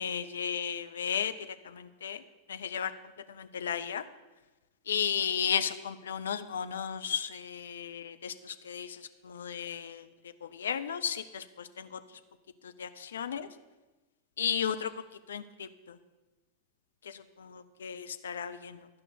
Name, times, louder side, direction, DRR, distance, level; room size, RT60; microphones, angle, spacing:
voice 1, 0.0-1.3 1.6-2.2 2.5-2.9 3.3-4.0 4.9-10.1 10.4-12.0 12.6-13.5 14.4-14.9 15.3-16.0 17.1-18.9, left 8 dB, 65° left, 10 dB, 0.5 m, -34 dB
11.5 x 5.3 x 6.9 m, 1.1 s
figure-of-eight pair, 90°, 0 cm